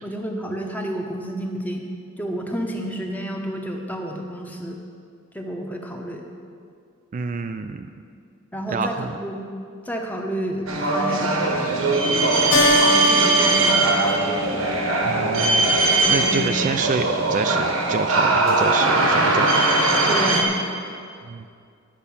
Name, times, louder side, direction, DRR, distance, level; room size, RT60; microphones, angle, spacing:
voice 1, 0.0-1.8 2.2-4.8 5.3-6.3 7.9-8.0 8.5-9.5 9.8-11.7 12.7-14.8 16.0-16.5 20.1-20.6, equal, 10° left, 2 dB, 0.8 m, -30 dB
voice 2, 7.1-7.9 8.7-9.2 15.0-19.7 21.2-21.5, right 4 dB, 40° right, 7 dB, 0.3 m, -27 dB
sound 1, 10.7-20.4, right 2 dB, 90° right, 1.3 m, -20 dB
Keyboard (musical), 12.5-15.4, equal, 65° left, 1.4 m, -23 dB
10.0 x 5.5 x 7.1 m, 2.3 s
head